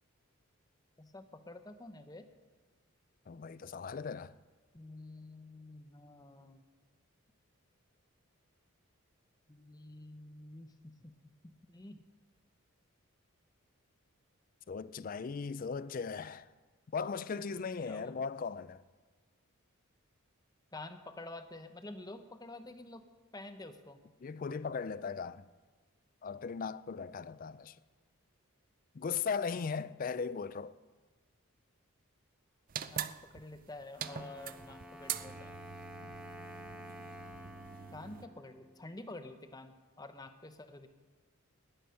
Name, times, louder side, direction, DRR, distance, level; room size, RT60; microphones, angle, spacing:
voice 1, 1.0-2.3 4.7-6.6 9.5-11.1 11.4-12.0 17.5-18.1 20.7-23.0 23.3-24.0 32.9-35.5 37.9-40.9, left 2 dB, 20° left, 0.7 m, -49 dB
voice 2, 3.3-4.3 14.7-16.5 16.9-18.8 24.2-25.4 26.2-27.8 28.9-30.7 36.0-36.1, left 5 dB, 40° left, 0.3 m, -38 dB
sound 1, 32.7-38.3, right 9 dB, 40° right, 0.5 m, -43 dB
Wind instrument woodwind instrument, 34.0-39.0, equal, 5° right, 1.1 m, -50 dB
19.5 x 7.9 x 5.7 m
head